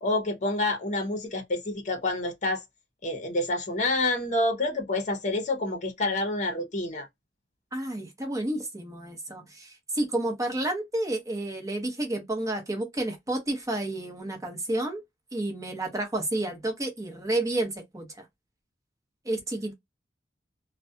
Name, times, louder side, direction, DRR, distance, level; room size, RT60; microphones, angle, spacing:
voice 1, 0.0-2.6 3.0-7.1, left 2 dB, 45° left, 0.7 m, -28 dB
voice 2, 7.7-15.0 15.3-18.2 19.2-19.7, right 1 dB, 20° right, 0.8 m, -30 dB
2.4 x 2.2 x 2.6 m
head